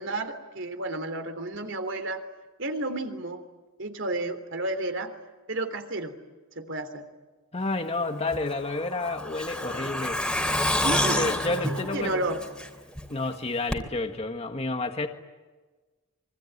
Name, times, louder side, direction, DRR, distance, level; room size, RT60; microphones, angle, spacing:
voice 1, 0.0-2.2 2.6-3.4 3.8-5.1 5.5-6.1 6.5-7.0 10.8-11.3 11.6-12.4, right 2 dB, 60° right, 8 dB, 3.3 m, -31 dB
voice 2, 7.5-10.2 11.1-12.2 13.1-15.1, left 2 dB, 30° left, 5 dB, 1.6 m, -30 dB
Truck, 8.3-13.0 13.3-13.4 13.7-13.8, left 1 dB, 5° left, 3.0 m, -28 dB
26.0 x 24.5 x 9.4 m, 1.3 s
head